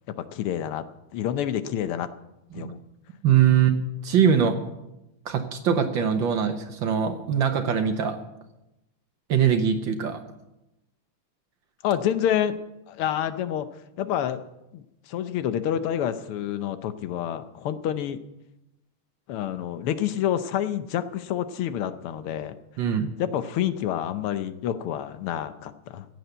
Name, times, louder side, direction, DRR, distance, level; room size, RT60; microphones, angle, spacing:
voice 1, 0.1-0.8 1.1-2.1 2.5-2.8 3.5-3.6 11.8-12.6 12.9-13.7 14.0-14.4 14.7-18.2 19.3-22.6 23.2-26.1, left 10 dB, 85° left, 11 dB, 1.7 m, -28 dB
voice 2, 3.2-3.7 4.0-4.6 5.2-8.2 9.3-10.2 22.8-23.1, right 8 dB, 65° right, 7 dB, 1.7 m, -22 dB
15.5 x 8.1 x 8.0 m, 0.92 s
omnidirectional pair, 2.4 m